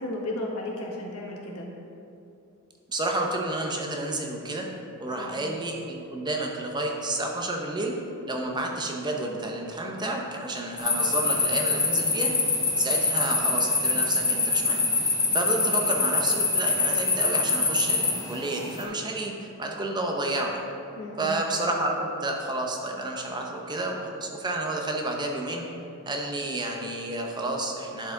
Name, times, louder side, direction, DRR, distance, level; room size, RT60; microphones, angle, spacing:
voice 1, 0.0-1.7 5.1-5.4 15.6-15.7 20.9-21.3, left 1 dB, 85° left, -2 dB, 1.4 m, -34 dB
voice 2, 2.9-4.7 5.0-8.0 8.3-12.4 12.8-20.6 21.2-25.6 26.1-28.1, right 2 dB, 20° right, 1 dB, 0.7 m, -30 dB
sound 1, 10.8-18.8, left 3 dB, 15° left, 0.8 m, -25 dB
10.5 x 4.9 x 3.8 m, 2.6 s
head